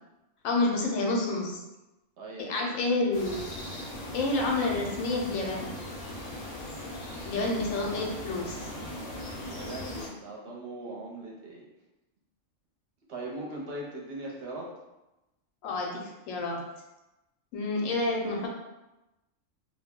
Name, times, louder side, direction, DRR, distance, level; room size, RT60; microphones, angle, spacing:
voice 1, 0.4-1.6 2.4-3.4 4.1-5.7 7.2-8.7 15.6-16.6 17.5-18.5, left 2 dB, 80° left, -1 dB, 1.0 m, -29 dB
voice 2, 2.2-2.6 9.3-11.6 13.1-14.7, right 1 dB, 55° right, -3 dB, 0.8 m, -40 dB
sound 1, 3.1-10.1, left 1 dB, 50° left, 0.7 m, -39 dB
2.3 x 2.1 x 3.5 m, 0.97 s
omnidirectional pair, 1.4 m